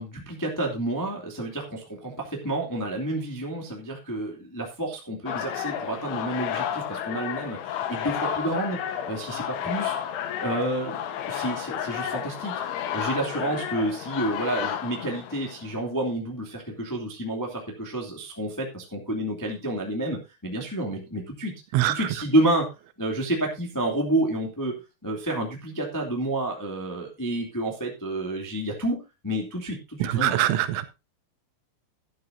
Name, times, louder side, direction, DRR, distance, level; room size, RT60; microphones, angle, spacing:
voice 1, 0.0-9.9 10.4-11.0 11.3-12.5 12.9-21.5 21.9-22.7 23.0-24.8 25.0-29.0 29.2-30.4, right 1 dB, 15° left, 0.6 m, -29 dB
sound 1, 5.3-15.7, left 9 dB, 80° left, 3.5 m, -31 dB
voice 2, 30.2-30.9, right 14 dB, 80° right, 3.2 m, -23 dB
12.0 x 12.0 x 2.7 m
omnidirectional pair, 5.5 m